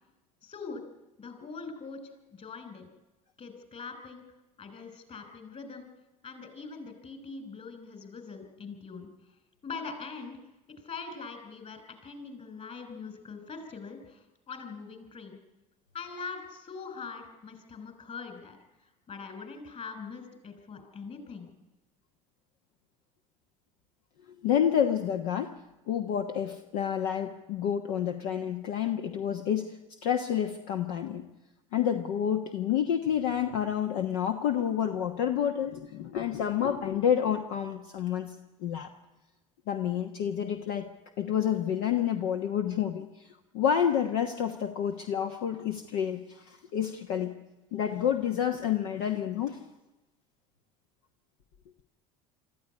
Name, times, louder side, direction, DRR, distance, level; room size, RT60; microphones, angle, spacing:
voice 1, 0.4-0.9 1.2-2.0 2.3-2.9 3.4-4.2 4.6-5.9 6.2-9.1 9.6-10.4 10.8-15.4 15.9-18.6 19.1-21.5, left 4 dB, 40° left, 8 dB, 5.5 m, -42 dB
voice 2, 24.4-25.5 25.9-31.2 31.7-38.3 38.6-38.9 39.7-40.9 41.2-43.3 43.5-47.3 47.7-49.6, left 9 dB, 70° left, 5 dB, 1.3 m, -29 dB
24.5 x 14.0 x 9.7 m, 1.0 s
hypercardioid pair, 70°, 18 cm